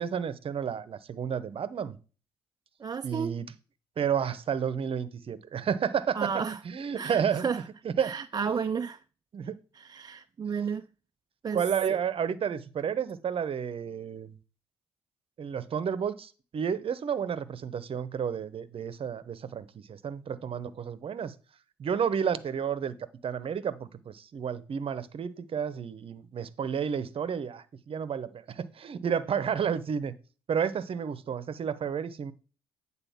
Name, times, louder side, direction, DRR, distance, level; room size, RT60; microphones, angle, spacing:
voice 1, 0.0-2.0 3.0-3.5 4.0-6.3 6.6-7.5 7.8-8.1 8.5-8.6 9.3-9.6 11.5-14.3 15.4-21.3 21.8-22.9 23.2-30.1 30.5-32.3, right 7 dB, 45° right, 0.8 m, -31 dB
voice 2, 2.8-3.4 6.1-6.6 7.0-7.6 8.0-9.0 9.8-10.8 11.4-11.6 11.9-12.0, right 6 dB, 30° right, 0.4 m, -32 dB
9.1 x 4.1 x 5.7 m
hypercardioid pair, 45°, 13 cm